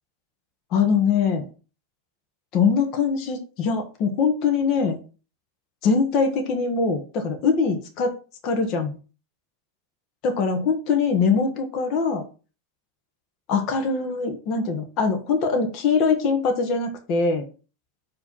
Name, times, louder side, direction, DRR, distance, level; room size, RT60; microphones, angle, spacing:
voice 1, 0.7-1.5 2.5-5.0 5.8-8.1 8.4-9.0 10.2-12.2 13.5-17.5, left 5 dB, 45° left, 5 dB, 1.4 m, -22 dB
5.0 x 3.5 x 5.4 m, 0.35 s
supercardioid pair, 135°, 0 cm